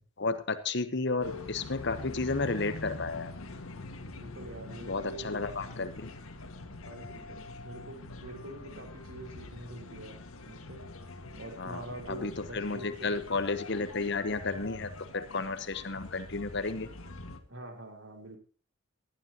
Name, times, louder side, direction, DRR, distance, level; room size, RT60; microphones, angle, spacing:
voice 1, 0.2-3.3 4.9-6.1 11.6-11.8 12.1-14.9 15.1-16.9, left 3 dB, 55° left, 10 dB, 1.0 m, -32 dB
sound 1, 1.2-17.4, left 2 dB, 90° left, 1.8 m, -44 dB
voice 2, 4.2-5.4 6.8-10.2 10.5-10.9 11.4-13.2 13.6-13.8 17.5-18.4, right 1 dB, 65° right, 3 dB, 3.6 m, -45 dB
19.0 x 12.0 x 2.9 m, 0.39 s
head